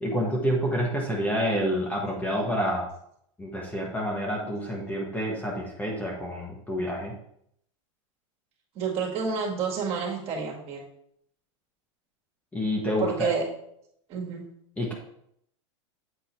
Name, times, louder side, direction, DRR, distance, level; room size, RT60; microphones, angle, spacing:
voice 1, 0.0-2.8 3.4-7.1 12.5-13.3 14.8-14.9, equal, 10° left, -2 dB, 1.2 m, -28 dB
voice 2, 8.8-10.8 13.0-13.5 14.1-14.4, right 5 dB, 35° right, -1 dB, 1.8 m, -29 dB
7.8 x 3.9 x 4.3 m, 0.72 s
supercardioid pair, 135°, 17 cm